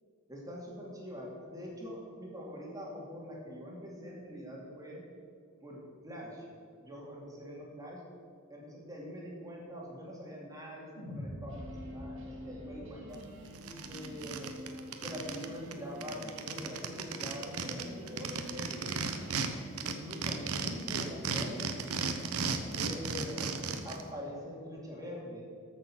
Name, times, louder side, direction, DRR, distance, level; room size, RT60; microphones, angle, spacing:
voice 1, 0.3-5.0 5.6-6.5 6.8-8.0 8.5-13.2 13.8-14.7 15.0-19.0 19.8-21.8 22.8-25.4, equal, 15° right, -3 dB, 2.6 m, -44 dB
sound 1, 11.0-15.3, equal, 75° left, 3.2 m, -47 dB
sound 2, 11.5-19.5, left 1 dB, 60° right, 2.3 m, -48 dB
sound 3, 13.1-13.2 13.5-15.5 15.7-15.8 16.0-19.5 19.8-24.0, right 5 dB, 85° right, 1.0 m, -35 dB
13.5 x 6.7 x 6.1 m, 2.2 s
head